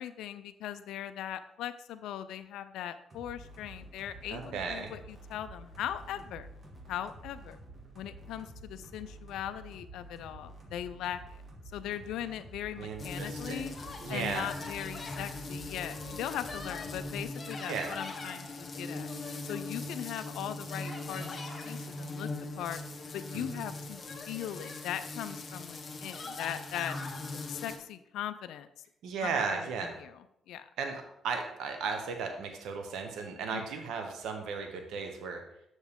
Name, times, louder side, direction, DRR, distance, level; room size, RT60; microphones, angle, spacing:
voice 1, 0.0-6.5 6.9-7.6 7.9-11.4 11.7-13.7 14.1-19.1 19.4-22.3 22.6-22.8 23.1-24.0 24.3-27.0 27.5-28.7 29.2-29.6 30.0-30.2 30.5-30.7 33.5-33.7, left 11 dB, 85° left, 11 dB, 0.3 m, -39 dB
sound 1, 3.1-17.2, right 2 dB, 45° right, 1.9 m, -50 dB
voice 2, 4.3-4.9 12.8-13.7 14.0-14.5 17.7-17.9 23.3-23.6 29.0-30.0 30.8-35.4, right 5 dB, 85° right, 5 dB, 0.9 m, -35 dB
sound 2, 13.0-27.8, left 2 dB, 35° left, 1.1 m, -40 dB
7.1 x 6.3 x 3.6 m, 0.78 s
cardioid pair, 90°, 0 cm